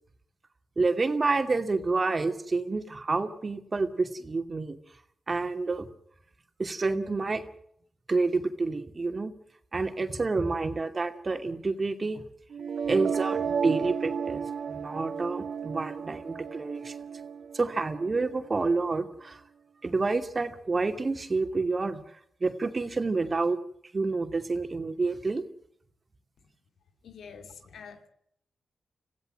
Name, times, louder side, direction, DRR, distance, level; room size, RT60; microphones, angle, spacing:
voice 1, 0.8-4.8 5.3-5.9 6.6-7.4 8.1-9.3 9.7-12.2 12.8-14.4 14.7-17.0 17.5-19.4 19.8-23.6 23.9-25.4, right 3 dB, 40° right, 7 dB, 2.6 m, -28 dB
sound 1, 12.5-18.5, right 6 dB, 70° right, 0.8 m, -33 dB
voice 2, 27.0-28.1, left 6 dB, 85° left, 8 dB, 2.6 m, -46 dB
26.5 x 16.0 x 7.8 m, 0.70 s
cardioid pair, 55°, 0 cm